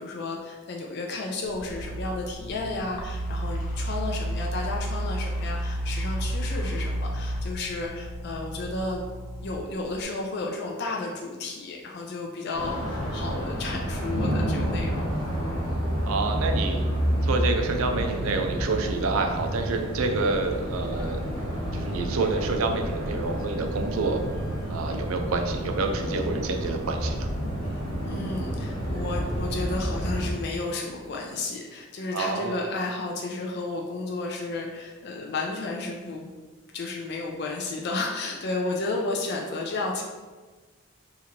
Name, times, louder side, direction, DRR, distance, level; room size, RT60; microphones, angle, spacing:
voice 1, 0.0-9.0 9.4-15.1 28.0-36.3 36.7-40.0, left 3 dB, 50° left, -1 dB, 0.4 m, -32 dB
sound 1, 1.4-10.0, equal, 85° left, 0.8 m, -32 dB
sound 2, 12.5-30.3, equal, 20° left, 1.0 m, -29 dB
voice 2, 16.0-16.8 17.2-21.2 21.7-24.2 24.7-27.3 32.1-32.6, right 3 dB, 75° right, 4 dB, 0.4 m, -28 dB
2.8 x 2.5 x 4.2 m, 1.3 s
head